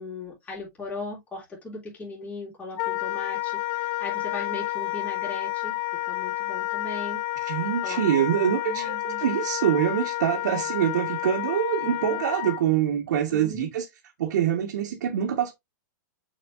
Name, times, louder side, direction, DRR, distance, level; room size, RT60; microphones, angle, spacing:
voice 1, 0.0-5.8 6.0-7.2 7.8-9.2 12.0-12.2 13.3-13.7, left 2 dB, 15° left, 3.3 m, -38 dB
Wind instrument woodwind instrument, 2.8-12.6, left 18 dB, 35° left, 0.5 m, -30 dB
voice 2, 7.4-13.9 14.2-15.5, right 10 dB, 65° right, 1.8 m, -25 dB
7.4 x 4.9 x 2.7 m
hypercardioid pair, 140°, 10 cm